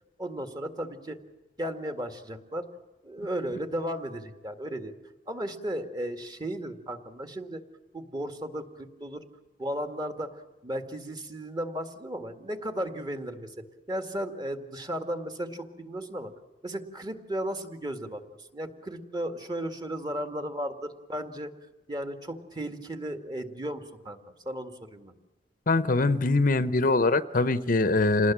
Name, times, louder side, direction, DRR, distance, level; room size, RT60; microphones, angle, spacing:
voice 1, 0.2-1.2 1.6-2.7 3.0-4.9 5.3-7.6 7.9-9.2 9.6-13.5 13.9-16.3 16.6-18.2 18.5-21.5 21.9-24.2 24.5-25.1, right 1 dB, 25° right, 6 dB, 2.0 m, -35 dB
voice 2, 25.7-28.3, left 2 dB, 50° left, 12 dB, 0.9 m, -23 dB
28.0 x 19.5 x 7.5 m, 1.1 s
head